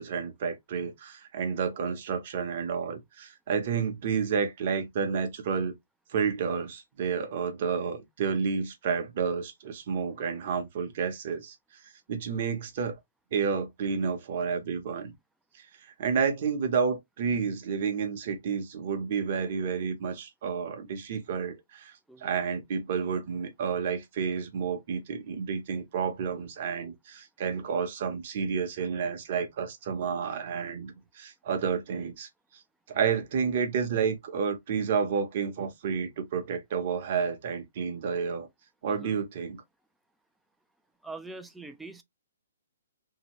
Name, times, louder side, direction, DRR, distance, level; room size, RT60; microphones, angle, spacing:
voice 1, 0.0-5.7 6.1-11.6 12.1-12.9 13.3-15.1 15.6-21.9 22.2-32.3 32.9-38.5 38.8-39.6, right 6 dB, 40° right, 0.8 m, -30 dB
voice 2, 38.9-39.2 41.0-42.0, right 3 dB, ahead, 0.3 m, -43 dB
2.8 x 2.5 x 2.9 m
hypercardioid pair, 170°, 0 cm